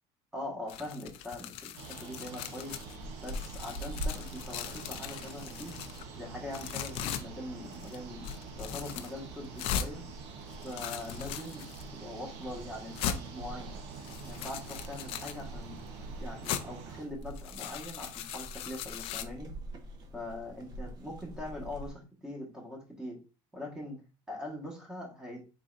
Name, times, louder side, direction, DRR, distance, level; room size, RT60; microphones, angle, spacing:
voice 1, 0.3-1.7 2.0-2.8 3.2-5.7 6.2-8.2 8.6-10.0 10.6-13.8 14.3-15.8 16.2-19.5 20.1-23.2 23.5-24.0 24.3-25.4, left 1 dB, 5° right, -1 dB, 1.3 m, -42 dB
sound 1, 0.7-3.0 3.2-6.0 6.5-7.2 7.7-8.0 8.2-9.1 9.6-9.9 10.5-11.8 12.4-12.5 13.0-13.2 13.9-15.4 16.4-16.6 17.2-19.2, left 9 dB, 50° left, 0.4 m, -39 dB
sound 2, 1.8-17.0, right 5 dB, 60° right, 0.9 m, -47 dB
sound 3, 2.6-21.9, right 1 dB, 35° right, 0.7 m, -46 dB
4.2 x 3.8 x 2.4 m, 0.32 s
cardioid pair, 160°, 12 cm